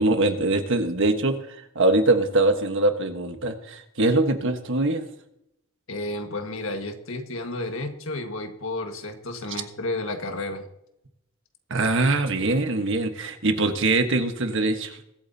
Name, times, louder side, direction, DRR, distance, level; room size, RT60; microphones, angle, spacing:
voice 1, 0.0-1.3 1.7-5.1 11.7-15.1, right 2 dB, 60° right, 6 dB, 1.4 m, -23 dB
voice 2, 5.9-10.6, left 2 dB, 65° left, 5 dB, 1.7 m, -32 dB
22.5 x 8.8 x 2.8 m, 0.82 s
head